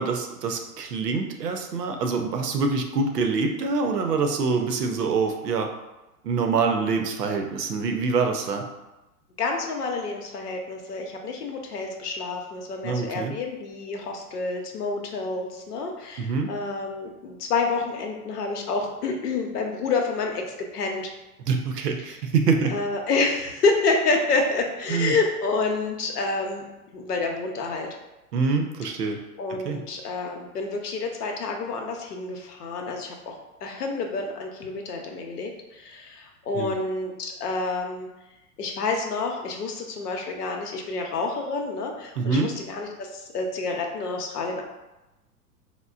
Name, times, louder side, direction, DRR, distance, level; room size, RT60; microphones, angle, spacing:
voice 1, 0.0-5.7 6.2-8.7 12.8-13.4 16.2-16.5 21.4-22.8 24.9-25.1 28.3-29.2 29.6-29.8 36.5-36.7 42.2-42.5, right 4 dB, 85° right, 4 dB, 0.7 m, -25 dB
voice 2, 9.4-21.1 22.7-26.6 26.9-27.9 29.4-33.3 33.6-38.1 38.6-44.6, left 3 dB, 75° left, 2 dB, 0.8 m, -28 dB
4.2 x 2.1 x 2.4 m, 1.0 s
hypercardioid pair, 110°, 47 cm